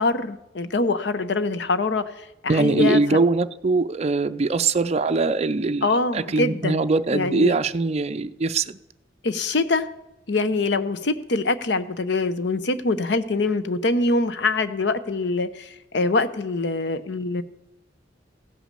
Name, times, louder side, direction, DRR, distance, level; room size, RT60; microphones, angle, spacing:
voice 1, 0.0-3.2 5.8-6.8 7.1-7.5 9.2-9.9 10.3-17.4, left 3 dB, 70° left, 0.8 m, -24 dB
voice 2, 2.5-8.8, right 3 dB, 35° right, 0.5 m, -22 dB
15.5 x 6.2 x 6.7 m
head